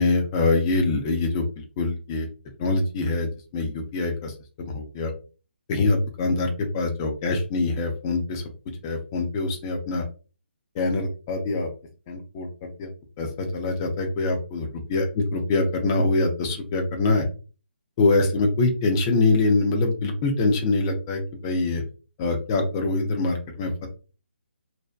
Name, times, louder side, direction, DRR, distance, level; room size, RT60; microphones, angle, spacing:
voice 1, 0.0-2.3 2.6-5.1 5.7-8.4 8.8-10.0 10.8-11.7 12.1-12.9 13.2-14.7 14.9-17.3 18.0-21.8 22.2-23.9, left 3 dB, 15° left, 3 dB, 0.4 m, -24 dB
2.6 x 2.1 x 2.3 m, 0.35 s
hypercardioid pair, 170°, 6 cm